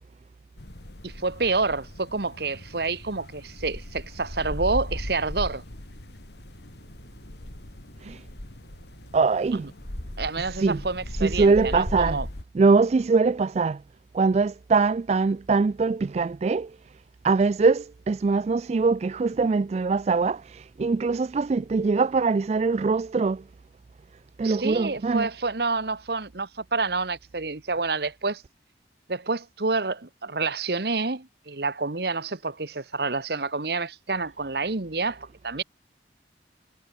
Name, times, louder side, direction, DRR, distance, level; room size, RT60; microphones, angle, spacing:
sound 1, 0.6-12.4, left 1 dB, 70° left, 2.7 m, -37 dB
voice 1, 1.0-5.6 10.2-12.2 24.4-28.4 29.1-35.6, right 3 dB, 65° right, 1.3 m, -28 dB
voice 2, 9.1-9.7 10.6-10.8 11.2-12.2 12.5-13.8 14.1-16.8 17.2-23.4 24.4-25.3, right 4 dB, 35° right, 0.3 m, -22 dB
head